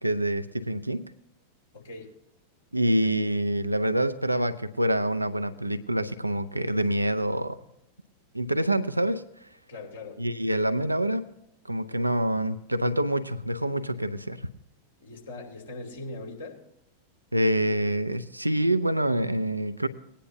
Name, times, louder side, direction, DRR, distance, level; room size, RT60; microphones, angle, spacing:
voice 1, 0.0-1.0 2.7-7.6 8.3-9.2 10.2-11.3 11.7-14.4 17.3-19.9, right 1 dB, 85° right, 10 dB, 0.6 m, -26 dB
voice 2, 1.7-2.1 9.7-10.2 15.0-16.6, left 2 dB, 70° left, -1 dB, 2.7 m, -40 dB
19.0 x 10.0 x 2.7 m, 0.82 s
figure-of-eight pair, 90°, 0 cm